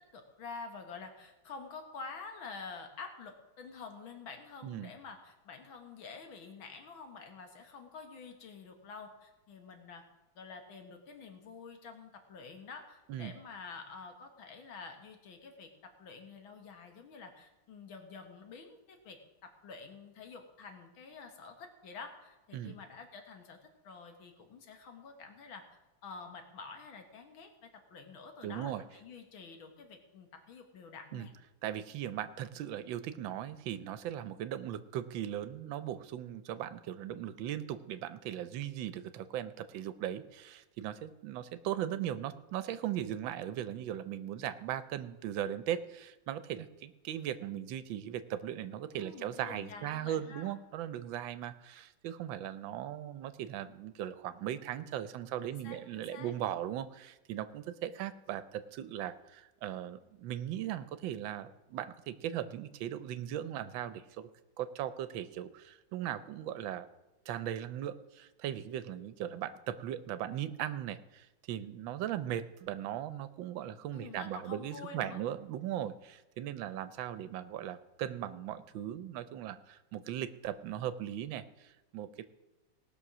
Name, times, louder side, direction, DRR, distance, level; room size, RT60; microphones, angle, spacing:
voice 1, 0.0-10.0 10.4-25.6 26.0-31.3 48.9-50.6 55.5-56.3 73.9-75.2, left 4 dB, 85° left, 5 dB, 2.2 m, -48 dB
voice 2, 28.4-28.8 31.1-31.3 31.6-64.3 64.6-66.8 67.3-82.3, right 11 dB, 80° right, 13 dB, 1.4 m, -38 dB
18.5 x 6.3 x 6.1 m, 1.1 s
omnidirectional pair, 2.1 m